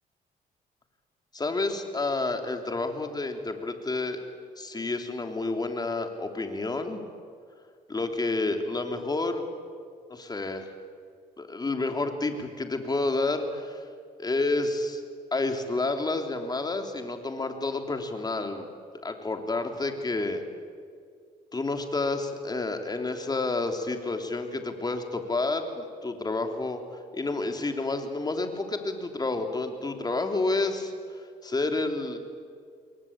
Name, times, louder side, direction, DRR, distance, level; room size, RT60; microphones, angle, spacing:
voice 1, 1.3-4.2 4.6-7.0 7.9-9.4 10.1-10.7 11.4-13.8 14.2-15.0 15.3-18.7 19.0-20.4 21.5-26.8 27.1-30.9 31.4-32.2, left 3 dB, 25° left, 5 dB, 3.3 m, -29 dB
28.5 x 23.0 x 8.8 m, 2.2 s
cardioid pair, 95°, 16 cm